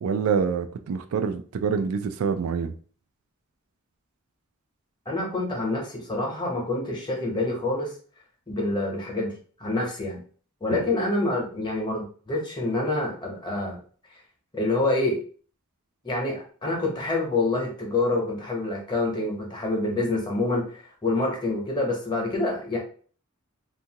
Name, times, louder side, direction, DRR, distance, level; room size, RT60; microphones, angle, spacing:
voice 1, 0.0-2.7, right 6 dB, 80° right, 8 dB, 0.3 m, -26 dB
voice 2, 5.1-7.9 8.5-10.2 10.6-13.8 14.5-15.2 16.0-20.7 21.0-22.8, left 2 dB, 20° left, -1 dB, 0.9 m, -27 dB
2.6 x 2.5 x 2.8 m, 0.42 s
head